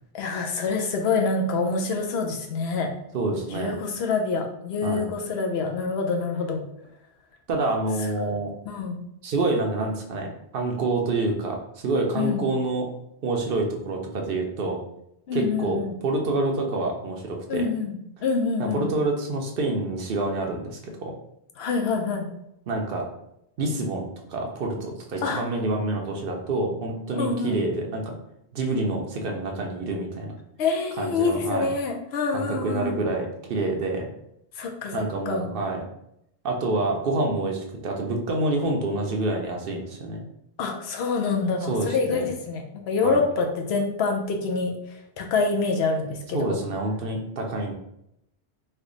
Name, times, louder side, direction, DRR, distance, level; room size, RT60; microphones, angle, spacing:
voice 1, 0.1-2.9 3.5-6.6 8.2-8.3 8.7-9.0 12.1-12.4 15.3-15.9 17.5-18.0 18.2-18.9 21.6-22.3 25.2-25.4 27.2-27.6 30.6-32.9 34.6-35.5 40.6-44.7 45.2-46.6, left 4 dB, 70° left, 3 dB, 0.8 m, -26 dB
voice 2, 3.1-3.8 4.8-5.1 7.5-8.5 9.2-14.8 15.3-17.7 18.6-21.1 22.7-23.0 23.6-28.2 28.5-30.3 31.0-31.7 32.3-34.1 34.9-35.8 36.4-40.2 41.7-42.3 43.0-43.2 46.3-47.7, right 2 dB, 60° right, 1 dB, 0.7 m, -27 dB
3.2 x 2.1 x 3.7 m, 0.80 s
omnidirectional pair, 1.1 m